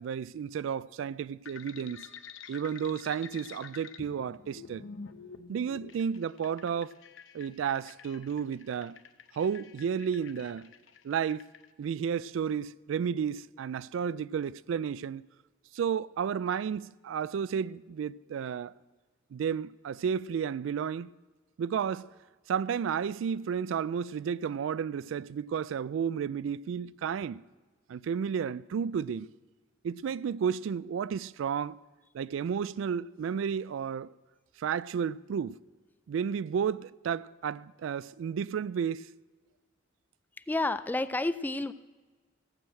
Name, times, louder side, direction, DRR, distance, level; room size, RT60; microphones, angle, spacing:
voice 1, 0.0-2.1 2.5-4.8 5.5-6.9 7.3-9.0 9.3-10.7 11.0-11.5 11.8-15.2 15.7-18.7 19.3-21.1 21.6-22.1 22.5-27.4 27.9-29.3 29.8-31.8 32.1-34.1 34.6-35.6 36.1-39.1, right 7 dB, 75° right, 0.3 m, -32 dB
sound 1, 1.5-11.7, left 6 dB, 75° left, 0.8 m, -48 dB
voice 2, 40.5-41.7, left 2 dB, 10° left, 0.3 m, -30 dB
15.5 x 6.3 x 7.7 m
head